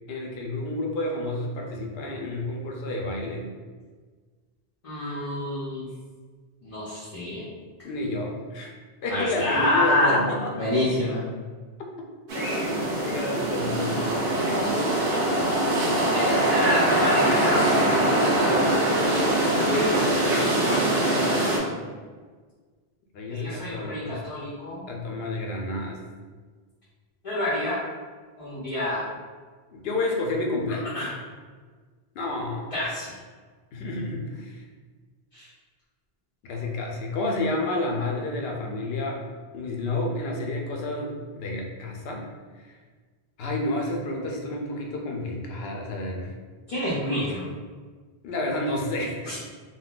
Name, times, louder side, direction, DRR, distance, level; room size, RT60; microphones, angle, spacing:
voice 1, 0.1-3.5 7.8-8.7 9.0-10.6 12.4-12.6 13.0-14.3 23.1-24.2 24.9-26.0 29.7-31.1 32.1-32.7 33.7-34.6 36.4-39.2 39.5-42.2 42.6-42.8 43.4-46.3 48.2-49.2, left 2 dB, 75° left, 0 dB, 0.8 m, -30 dB
voice 2, 4.8-5.9 6.6-7.4 9.1-10.2 10.6-11.2 16.1-21.7 23.3-24.8 27.2-27.8 28.4-29.0 30.9-31.1 32.7-33.1 35.3-35.5 46.7-47.5 49.2-49.4, left 1 dB, 40° left, -9 dB, 0.6 m, -28 dB
sound 1, 12.3-21.6, right 1 dB, 70° right, 0.9 m, -23 dB
3.7 x 2.2 x 2.3 m, 1.5 s
omnidirectional pair, 1.0 m